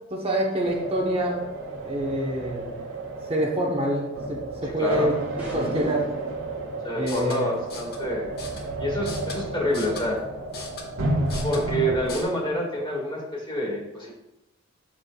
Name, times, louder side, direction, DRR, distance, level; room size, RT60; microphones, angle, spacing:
voice 1, 0.1-1.4 1.8-2.8 3.3-5.2 5.5-6.1 6.9-7.5, equal, 30° right, -1 dB, 1.0 m, -26 dB
sound 1, 0.7-12.0, right 2 dB, 80° right, 1.5 m, -32 dB
voice 2, 4.6-5.1 6.8-8.3 8.8-10.2 11.4-14.1, equal, 25° left, -2 dB, 1.8 m, -27 dB
sound 2, 5.4-6.4, right 1 dB, 10° right, 2.6 m, -34 dB
sound 3, 6.9-12.2, left 2 dB, 50° left, 1.4 m, -41 dB
8.4 x 7.2 x 2.3 m, 0.92 s
head